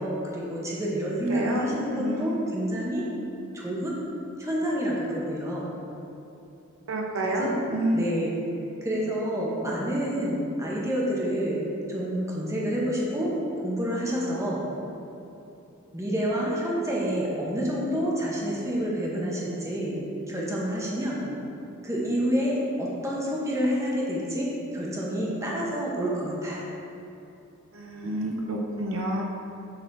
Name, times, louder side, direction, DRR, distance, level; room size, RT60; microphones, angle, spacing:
voice 1, 0.0-3.1 3.5-4.0 4.4-5.7 7.2-7.6 7.9-8.4 8.8-11.6 11.9-13.3 13.6-14.6 15.9-20.0 20.3-21.2 21.8-26.6, equal, 15° right, -5 dB, 1.2 m, -28 dB
voice 2, 1.3-2.3 6.9-8.1 27.7-29.2, right 1 dB, 70° right, 0 dB, 0.7 m, -29 dB
9.7 x 4.2 x 4.1 m, 2.9 s
head